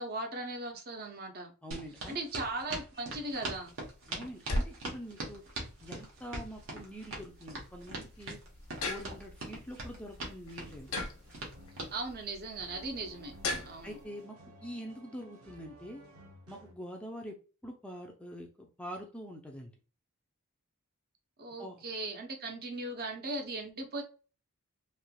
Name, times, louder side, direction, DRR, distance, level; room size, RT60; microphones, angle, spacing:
voice 1, 0.0-1.5 2.1-3.7 11.9-13.3 13.6-14.0 21.4-24.0, right 2 dB, 45° right, 0.8 m, -38 dB
voice 2, 1.6-2.2 4.1-5.4 5.8-8.4 8.8-10.9 13.8-16.0 16.5-17.4 17.6-19.7 21.6-21.8, equal, 5° left, 0.4 m, -45 dB
sound 1, 1.7-11.9, right 2 dB, 65° right, 1.1 m, -41 dB
sound 2, 3.3-14.0, left 2 dB, 85° left, 0.9 m, -41 dB
sound 3, 10.6-16.7, equal, 85° right, 0.9 m, -56 dB
3.3 x 2.9 x 2.2 m
head